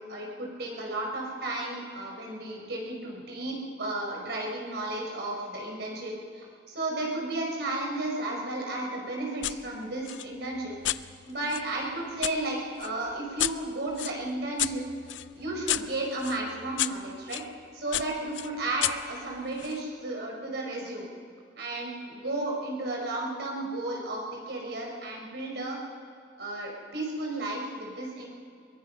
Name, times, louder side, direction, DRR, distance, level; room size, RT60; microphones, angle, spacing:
voice 1, 0.0-14.8 15.3-17.4 17.7-21.1 21.6-25.8 26.4-28.3, right 2 dB, 65° right, -1 dB, 5.3 m, -33 dB
sound 1, 9.4-9.6 10.1-12.4 12.8-17.5 17.9-19.8, left 13 dB, 90° left, 0.6 m, -33 dB
22.5 x 22.0 x 5.5 m, 2.2 s
head